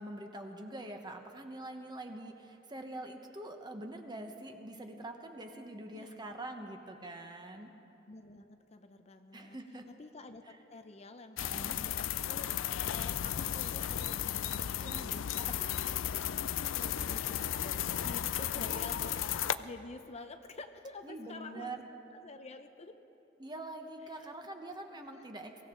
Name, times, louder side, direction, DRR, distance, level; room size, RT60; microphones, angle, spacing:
voice 1, 0.0-7.7 9.3-9.9 11.4-11.8 14.8-15.7 18.6-19.0 21.0-21.9 23.4-25.7, right 1 dB, 25° right, 4 dB, 1.1 m, -45 dB
voice 2, 8.0-9.6 9.9-14.9 16.7-21.7 22.1-22.9 24.0-24.3 24.9-25.3, left 3 dB, 35° left, 7 dB, 0.6 m, -49 dB
sound 1, 11.4-19.6, left 10 dB, 85° left, 0.4 m, -34 dB
23.0 x 15.5 x 3.8 m, 2.9 s
head